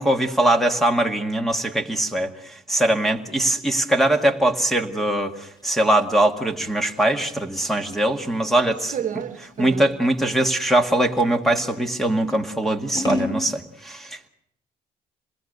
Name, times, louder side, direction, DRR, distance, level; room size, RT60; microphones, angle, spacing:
voice 1, 0.0-2.3 2.7-5.3 5.6-8.9 9.6-14.3, right 1 dB, ahead, 2.0 m, -21 dB
Scissors, 5.6-11.7 12.3-13.4, left 1 dB, 25° left, 3.0 m, -34 dB
voice 2, 8.9-9.9, right 8 dB, 50° right, 1.4 m, -30 dB
26.5 x 21.0 x 6.7 m
cardioid pair, 110°, 17 cm